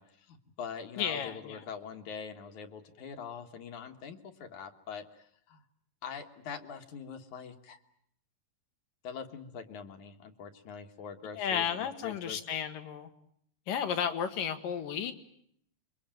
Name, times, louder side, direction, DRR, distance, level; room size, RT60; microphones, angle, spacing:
voice 1, 0.0-5.6 6.0-7.8 9.0-12.4, left 6 dB, 65° left, 6 dB, 3.0 m, -44 dB
voice 2, 1.0-1.6 11.4-13.1 13.7-15.1, left 8 dB, 90° left, 8 dB, 3.5 m, -33 dB
27.0 x 23.5 x 9.1 m, 0.69 s
omnidirectional pair, 3.8 m